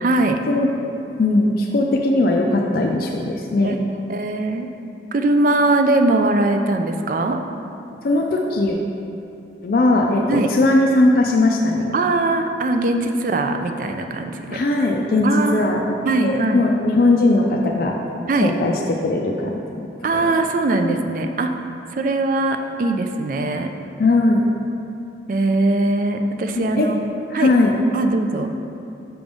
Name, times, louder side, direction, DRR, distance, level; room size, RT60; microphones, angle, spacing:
voice 1, 0.0-0.4 3.6-3.7 4.1-4.7 5.1-7.4 10.3-10.5 11.9-14.6 15.2-15.7 16.1-16.6 18.3-18.5 20.0-21.6 21.9-23.7 25.3-26.9 27.3-27.5 27.9-28.5, right 2 dB, 50° right, 5 dB, 0.3 m, -20 dB
voice 2, 1.2-3.8 8.0-8.8 9.6-11.9 14.5-15.9 16.2-17.9 18.4-18.7 19.0-19.5 20.1-20.3 20.8-21.0 24.0-24.4 26.5-26.9 27.3-27.7, left 2 dB, 55° left, 0 dB, 0.4 m, -19 dB
6.0 x 3.4 x 5.2 m, 2.7 s
head